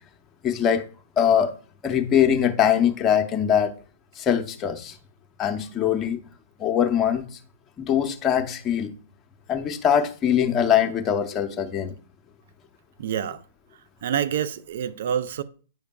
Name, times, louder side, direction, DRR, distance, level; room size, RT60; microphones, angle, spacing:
voice 1, 0.4-0.8 1.2-1.6 1.8-3.7 4.2-5.0 5.4-6.2 6.6-7.3 7.8-8.9 9.5-11.9, left 9 dB, 25° left, 0.7 m, -22 dB
voice 2, 13.0-13.4 14.0-15.4, right 9 dB, 60° right, 0.4 m, -27 dB
9.1 x 5.1 x 2.2 m
figure-of-eight pair, 110°, 0 cm